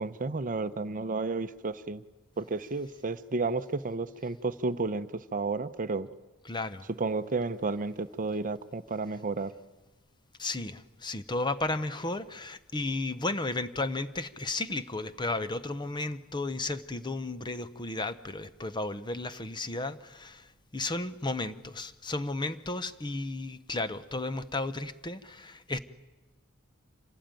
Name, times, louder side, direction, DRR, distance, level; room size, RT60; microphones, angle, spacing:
voice 1, 0.0-2.0 2.4-6.1 7.0-9.5, right 3 dB, 40° right, 12 dB, 0.8 m, -32 dB
voice 2, 6.5-6.9 10.4-20.5 20.7-25.8, left 2 dB, 20° left, 12 dB, 0.8 m, -33 dB
26.5 x 18.0 x 9.0 m, 1.1 s
head